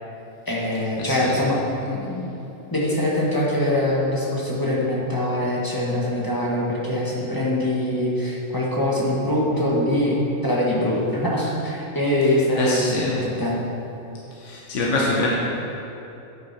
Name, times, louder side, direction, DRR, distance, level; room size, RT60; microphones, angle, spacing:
voice 1, 0.5-2.3 2.7-10.2 10.4-13.6, left 1 dB, 15° left, -5 dB, 1.5 m, -23 dB
voice 2, 1.0-1.4 12.5-13.2 14.4-15.3, left 2 dB, 60° left, -4 dB, 1.4 m, -24 dB
10.0 x 7.9 x 4.2 m, 2.9 s
omnidirectional pair, 1.5 m